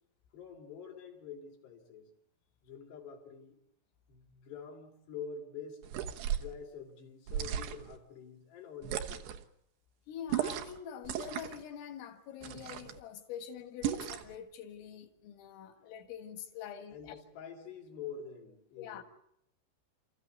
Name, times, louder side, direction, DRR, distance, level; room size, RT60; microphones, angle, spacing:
voice 1, 0.3-2.1 2.6-3.6 4.1-5.9 6.3-9.4 16.9-19.0, left 6 dB, 60° left, 5.4 m, -47 dB
sound 1, 5.8-6.5 7.3-8.0 8.8-9.4 10.3-10.8 11.0-11.6 12.4-13.0 13.8-14.4, right 10 dB, 70° right, 2.9 m, -36 dB
voice 2, 10.1-17.2 18.8-19.0, left 8 dB, 90° left, 4.2 m, -45 dB
29.5 x 14.5 x 9.4 m
omnidirectional pair, 5.7 m